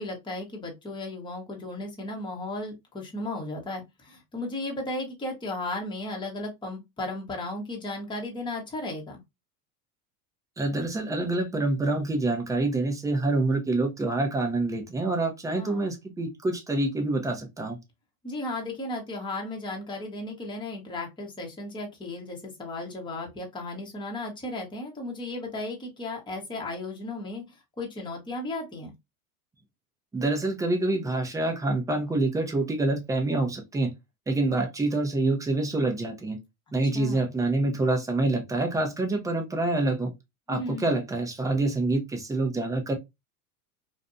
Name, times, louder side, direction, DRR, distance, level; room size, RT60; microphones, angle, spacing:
voice 1, 0.0-9.2 15.5-15.9 18.2-27.4 27.8-28.9 36.9-37.3 40.5-40.9, left 2 dB, 10° left, 0.9 m, -35 dB
voice 2, 10.6-17.8 30.1-33.9 34.3-36.4 36.7-40.1 40.5-42.9, right 2 dB, 10° right, 0.5 m, -26 dB
2.5 x 2.2 x 2.5 m
supercardioid pair, 110°, 42 cm